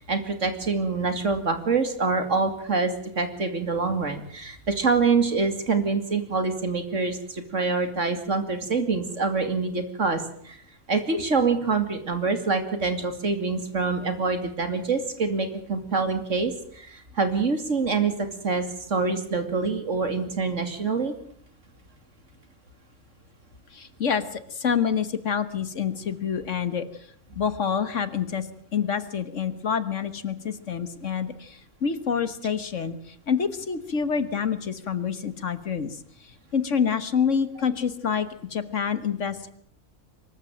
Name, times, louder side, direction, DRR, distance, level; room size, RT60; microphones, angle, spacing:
voice 1, 0.0-10.6 10.9-21.1, right 4 dB, 55° right, 8 dB, 2.8 m, -26 dB
voice 2, 23.7-26.9 27.3-36.0 36.5-39.5, left 7 dB, 55° left, 13 dB, 1.6 m, -27 dB
24.0 x 14.0 x 9.0 m, 0.64 s
omnidirectional pair, 1.5 m